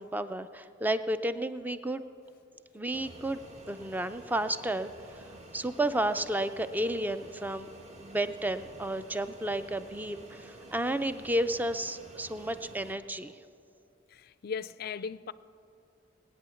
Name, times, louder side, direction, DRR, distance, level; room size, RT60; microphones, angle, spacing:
voice 1, 0.0-2.0 2.7-3.4 3.7-5.3 5.5-7.7 8.0-13.3, right 1 dB, 10° right, 0.4 m, -32 dB
Fixed-wing aircraft airplane, 2.9-12.9, right 1 dB, 35° right, 1.2 m, -50 dB
voice 2, 14.1-15.3, left 6 dB, 50° left, 0.4 m, -37 dB
20.0 x 9.1 x 7.1 m
head